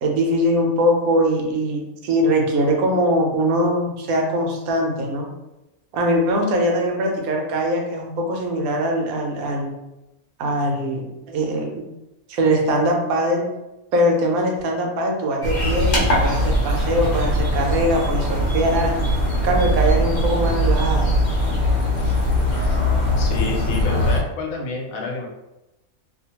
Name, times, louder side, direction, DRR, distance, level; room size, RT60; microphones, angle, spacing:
voice 1, 0.0-5.3 5.9-9.8 10.4-11.9 12.3-13.5 13.9-19.0 19.4-21.2, equal, 85° right, 1 dB, 1.1 m, -21 dB
sound 1, 15.4-24.2, equal, 55° left, 1.0 m, -20 dB
voice 2, 23.2-25.3, left 3 dB, 80° left, 1 dB, 1.1 m, -28 dB
2.6 x 2.1 x 2.8 m, 0.96 s
omnidirectional pair, 1.5 m